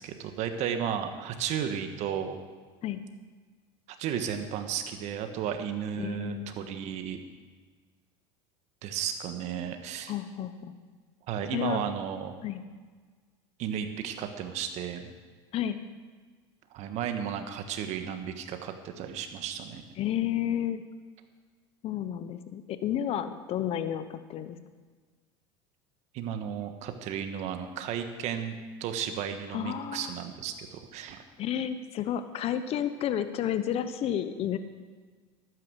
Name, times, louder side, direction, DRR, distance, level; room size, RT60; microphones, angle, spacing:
voice 1, 0.0-2.4 4.0-7.2 8.8-10.1 11.3-12.4 13.6-15.1 16.7-19.8 26.1-28.5 28.8-31.2, right 8 dB, 55° right, 7 dB, 1.5 m, -34 dB
voice 2, 6.0-6.6 10.1-10.7 11.5-11.8 12.4-12.6 15.5-15.8 20.0-20.8 21.8-24.6 29.5-30.1 31.4-34.6, left 10 dB, 50° left, 11 dB, 1.0 m, -31 dB
12.0 x 9.6 x 6.5 m, 1.5 s
supercardioid pair, 95°, 14 cm